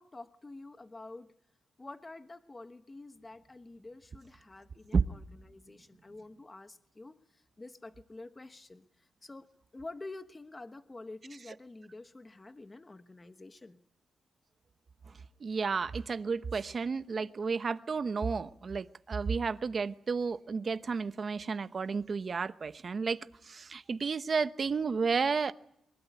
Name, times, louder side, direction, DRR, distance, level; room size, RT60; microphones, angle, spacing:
voice 1, 0.0-1.3 1.8-13.8, left 2 dB, 20° left, 10 dB, 1.2 m, -48 dB
voice 2, 15.4-23.2 23.4-25.5, right 5 dB, 40° right, 13 dB, 1.0 m, -32 dB
23.5 x 21.5 x 9.3 m, 0.74 s
wide cardioid pair, 125°, 0 cm